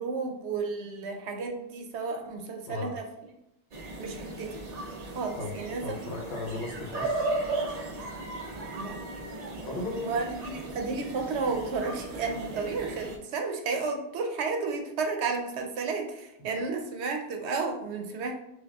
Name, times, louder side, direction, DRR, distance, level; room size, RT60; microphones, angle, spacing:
voice 1, 0.0-3.1 4.0-4.6 5.1-5.8 8.7-9.0 10.0-18.3, right 4 dB, 75° right, 3 dB, 0.9 m, -32 dB
sound 1, 3.7-13.2, right 2 dB, 50° right, 0.5 m, -36 dB
voice 2, 5.8-7.3 9.7-10.0, left 2 dB, 65° left, -1 dB, 1.1 m, -36 dB
6.3 x 2.4 x 2.3 m, 0.87 s
omnidirectional pair, 1.2 m